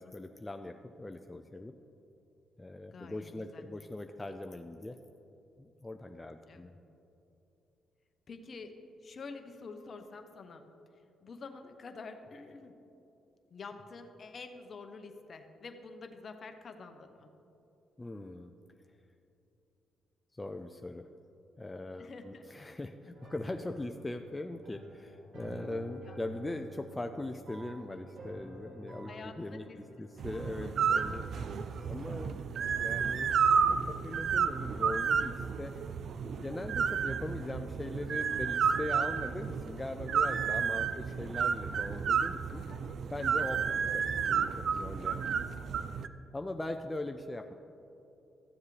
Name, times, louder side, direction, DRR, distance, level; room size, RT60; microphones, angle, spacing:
voice 1, 0.0-1.7 2.6-5.0 5.6-6.8 18.0-18.5 20.4-21.1 21.6-31.2 31.9-32.4 32.8-33.3 33.9-35.7 36.4-42.6 43.1-45.4 46.3-47.5, left 2 dB, 15° left, 5 dB, 0.4 m, -41 dB
voice 2, 2.9-3.7 6.5-6.7 8.3-8.7 9.0-10.6 11.2-12.7 13.5-17.3 22.0-22.5 26.0-26.2 29.1-29.8 30.6-30.9 36.4-36.6 43.2-43.3, left 4 dB, 45° left, 7 dB, 0.8 m, -48 dB
sound 1, 23.1-33.3, right 2 dB, 75° right, 2.4 m, -50 dB
sound 2, 30.2-46.1, right 6 dB, 60° right, 0.4 m, -31 dB
14.0 x 7.2 x 3.3 m, 2.9 s
cardioid pair, 90°, 0 cm